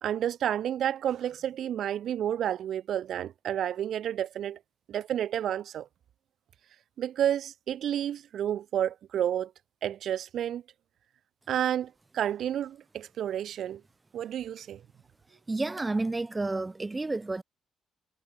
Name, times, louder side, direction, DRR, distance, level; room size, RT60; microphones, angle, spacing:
voice 1, 0.0-4.6 4.9-5.9 7.0-9.5 9.8-10.6 11.5-13.8 14.1-14.8, right 10 dB, 70° right, 0.5 m, -30 dB
voice 2, 15.5-17.4, right 2 dB, 20° right, 1.7 m, -30 dB
cardioid pair, 90°, 0 cm